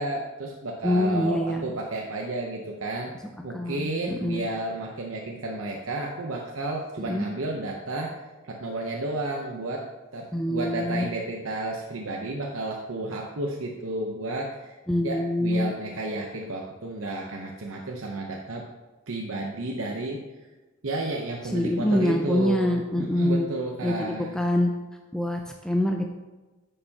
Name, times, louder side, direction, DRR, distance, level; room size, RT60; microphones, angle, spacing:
voice 1, 0.0-3.1 3.4-8.1 8.5-9.9 10.1-14.8 15.0-18.7 19.1-20.2 20.8-24.4, right 2 dB, 70° right, 0 dB, 0.8 m, -32 dB
voice 2, 0.8-1.6 3.5-4.4 7.0-7.3 10.3-11.1 14.9-15.7 21.4-23.5 23.8-24.7 25.1-26.1, left 1 dB, 5° left, 2 dB, 0.4 m, -25 dB
9.9 x 6.7 x 2.9 m, 1.2 s
head